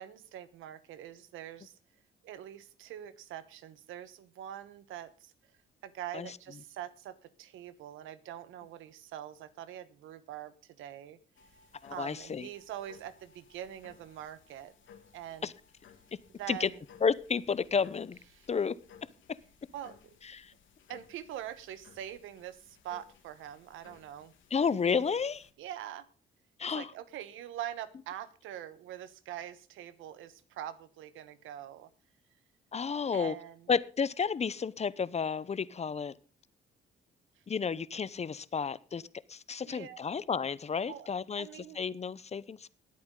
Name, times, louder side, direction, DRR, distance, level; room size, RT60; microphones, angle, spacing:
voice 1, 0.0-1.8 2.2-5.3 5.8-11.2 11.9-14.7 15.1-15.5 16.4-16.8 18.3-18.5 19.7-20.2 20.9-24.3 25.6-26.1 26.7-31.9 33.1-33.7 39.6-40.0 40.9-41.1 41.4-41.8, right 11 dB, 90° right, 14 dB, 1.2 m, -44 dB
sound 1, 11.3-25.5, left 7 dB, 75° left, 2.2 m, -60 dB
voice 2, 11.8-12.5 15.4-15.5 16.5-16.7 17.0-18.2 18.5-18.7 19.3-19.4 20.3-20.5 24.5-25.5 26.6-26.9 32.7-33.3 33.7-36.1 37.5-39.0 39.3-41.5 41.7-42.7, left 6 dB, 35° left, 18 dB, 0.7 m, -31 dB
19.5 x 8.7 x 3.8 m, 0.38 s
cardioid pair, 90°, 20 cm